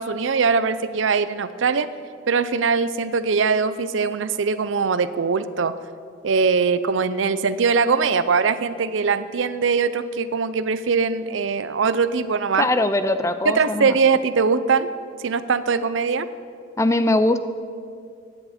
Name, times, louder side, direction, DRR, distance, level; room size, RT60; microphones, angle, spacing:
voice 1, 0.0-1.9 2.3-5.7 6.2-12.7 13.4-14.9 15.2-16.3, right 5 dB, 75° right, 14 dB, 0.5 m, -21 dB
voice 2, 12.6-14.0 16.8-17.5, left 2 dB, 15° left, 11 dB, 0.5 m, -21 dB
15.0 x 10.0 x 4.3 m, 2.3 s
head